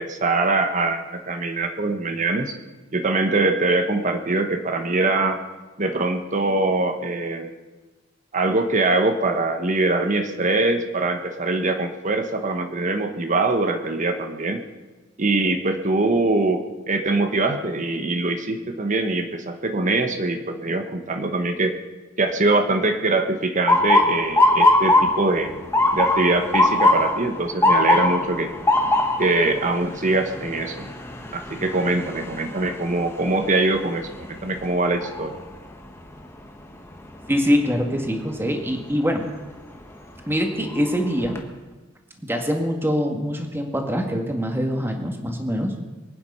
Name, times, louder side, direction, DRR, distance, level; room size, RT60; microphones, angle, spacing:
voice 1, 0.0-2.5 2.9-5.4 5.8-7.5 8.3-14.6 15.2-21.8 22.2-25.6 25.9-28.5 29.2-30.9 31.3-35.4, right 2 dB, 40° right, 6 dB, 1.2 m, -23 dB
Motor vehicle (road) / Siren, 23.7-35.6 36.0-36.5 37.2-37.6 39.4-39.7 40.2-40.3 40.7-41.4, left 2 dB, 15° left, 1.6 m, -22 dB
voice 2, 37.3-39.2 40.3-41.4 42.2-45.7, equal, 10° right, 3 dB, 1.9 m, -24 dB
23.5 x 9.5 x 5.6 m, 1.2 s
head